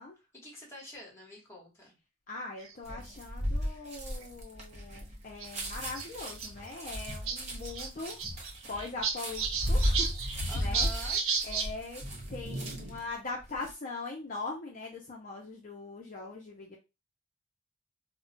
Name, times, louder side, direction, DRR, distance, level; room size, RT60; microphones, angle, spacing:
voice 1, 0.3-2.0 10.5-11.2, equal, 15° left, -2 dB, 1.0 m, -46 dB
voice 2, 2.3-8.2 8.7-10.9 11.4-12.0 12.3-16.8, left 3 dB, 40° left, -1 dB, 0.5 m, -41 dB
sound 1, 2.6-3.0 3.9-4.0 4.2-4.3 5.4-5.5 5.9-6.5 6.8-6.9 7.1-7.4 7.6-11.7 12.0-13.0, right 5 dB, 85° right, 0.6 m, -34 dB
sound 2, 2.8-13.0 13.4-13.7, equal, 35° right, 0.7 m, -35 dB
2.3 x 2.1 x 3.7 m, 0.26 s
head